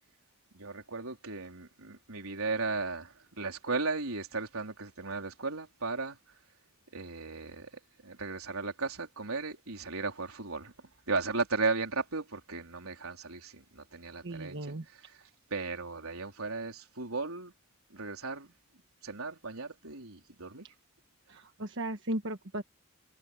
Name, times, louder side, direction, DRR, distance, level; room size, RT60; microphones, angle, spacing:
voice 1, 0.5-6.2 6.9-7.7 8.0-10.7 11.1-15.2 15.5-17.5 17.9-18.5 19.0-20.6, right 4 dB, 90° right, 4.1 m, -36 dB
voice 2, 14.2-14.8 21.3-22.6, right 1 dB, 60° right, 1.3 m, -36 dB
head